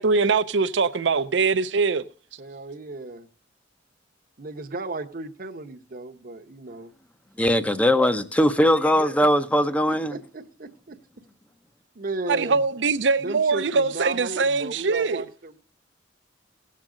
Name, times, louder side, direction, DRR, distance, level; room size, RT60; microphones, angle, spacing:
voice 1, 0.0-2.1 12.3-15.2, right 4 dB, 70° right, 0.6 m, -22 dB
voice 2, 2.4-3.3 4.4-6.9 9.9-11.0 11.9-12.6 13.2-15.6, right 2 dB, 50° right, 0.9 m, -35 dB
voice 3, 7.4-10.1, equal, 5° left, 0.6 m, -20 dB
17.5 x 7.5 x 3.8 m
head